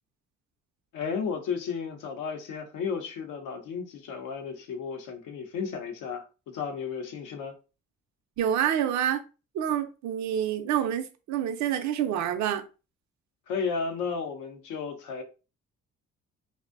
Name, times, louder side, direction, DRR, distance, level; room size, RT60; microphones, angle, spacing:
voice 1, 0.9-7.6 13.5-15.2, left 5 dB, 85° left, 0.6 m, -33 dB
voice 2, 8.4-9.2 9.5-12.6, right 9 dB, 70° right, 0.5 m, -27 dB
2.5 x 2.1 x 2.4 m
cardioid pair, 90°, 30 cm